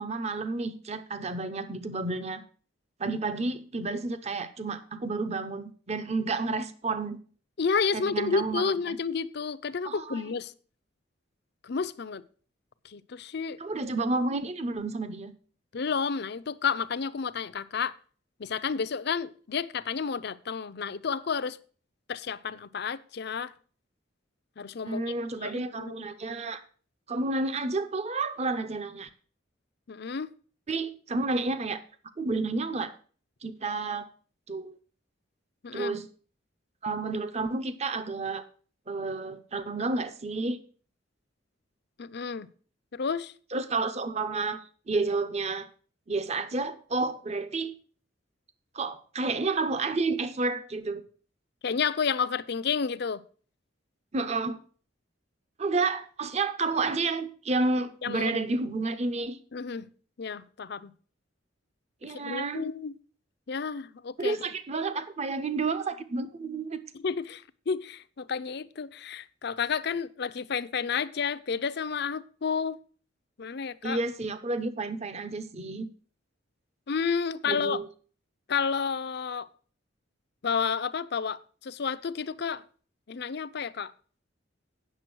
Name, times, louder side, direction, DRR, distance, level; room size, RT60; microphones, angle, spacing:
voice 1, 0.0-2.4 3.0-7.2 7.9-9.0 9.8-10.2 13.6-15.3 24.9-26.6 27.1-29.1 30.7-31.8 32.2-33.0 33.4-34.1 34.5-34.8 35.7-36.1 36.8-38.4 38.9-40.6 43.5-44.6 44.9-45.7 46.1-47.7 48.7-51.0 54.1-54.6 55.6-59.4 62.0-62.6 64.2-66.8 73.8-75.9 77.4-77.9, right 3 dB, 35° right, 0.8 m, -30 dB
voice 2, 7.6-10.5 11.6-12.2 12.8-13.6 15.7-17.9 18.4-21.6 22.1-23.5 24.6-25.0 25.4-26.0 29.9-30.3 35.6-36.0 42.0-42.5 42.9-43.3 51.6-53.2 58.0-58.3 59.5-59.9 60.2-60.9 62.0-62.9 63.5-64.4 66.9-72.8 73.4-74.0 76.9-77.8 78.5-79.5 80.4-82.6 83.1-83.9, left 5 dB, 60° left, 0.5 m, -31 dB
9.0 x 6.8 x 6.2 m
head